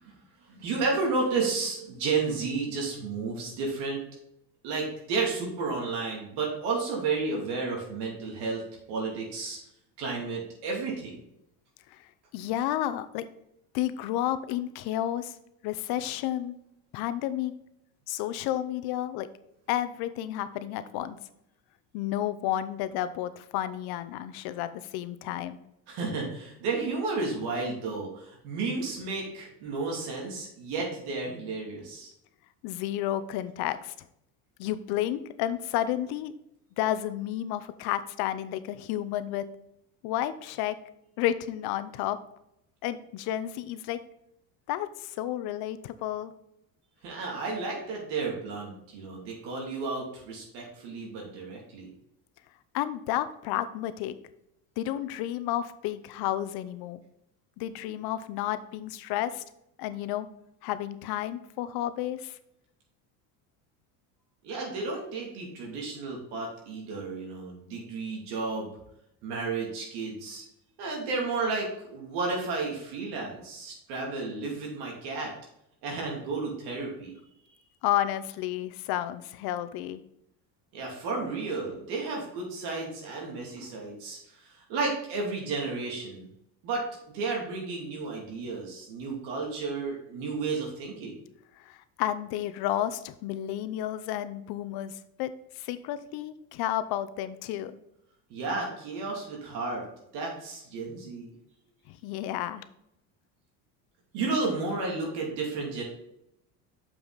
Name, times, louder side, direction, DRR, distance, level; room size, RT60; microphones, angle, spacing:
voice 1, 0.5-4.0 4.6-8.6 8.9-9.6 10.0-11.2 25.9-32.1 47.0-51.9 64.4-68.7 69.2-70.4 70.8-75.3 75.8-77.1 80.7-86.3 86.6-86.8 87.1-91.2 98.3-99.8 100.1-101.3 104.1-105.8, right 4 dB, 75° right, -2 dB, 2.7 m, -32 dB
voice 2, 12.3-13.3 13.7-15.3 15.6-16.5 16.9-17.5 18.1-19.3 19.7-21.2 21.9-25.6 32.6-33.9 34.6-36.3 36.8-39.5 40.0-40.7 41.2-42.2 42.8-44.0 44.7-46.3 52.7-54.2 54.8-57.0 57.6-59.4 59.8-60.3 60.6-62.4 77.8-80.0 91.6-95.3 95.6-97.8 102.0-102.7, left 12 dB, 65° left, 13 dB, 0.7 m, -31 dB
7.1 x 5.7 x 4.0 m, 0.79 s
cardioid pair, 130°, 40 cm